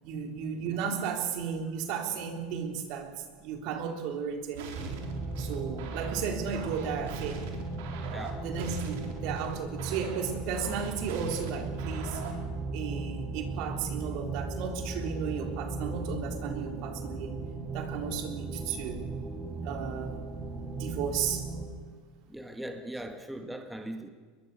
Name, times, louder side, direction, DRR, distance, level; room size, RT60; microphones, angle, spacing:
voice 1, 0.0-4.9 5.4-7.5 8.4-12.2 12.7-17.4 17.7-19.1 19.6-20.3 20.8-21.5, right 7 dB, 60° right, 4 dB, 3.8 m, -34 dB
sound 1, 4.5-12.5, right 6 dB, 80° right, 4.2 m, -42 dB
sound 2, 4.7-21.7, right 3 dB, 25° right, 7.3 m, -37 dB
voice 2, 8.1-8.5 22.3-24.1, right 1 dB, 5° right, 6 dB, 1.7 m, -39 dB
23.0 x 21.5 x 6.8 m, 1.5 s
supercardioid pair, 110°, 0 cm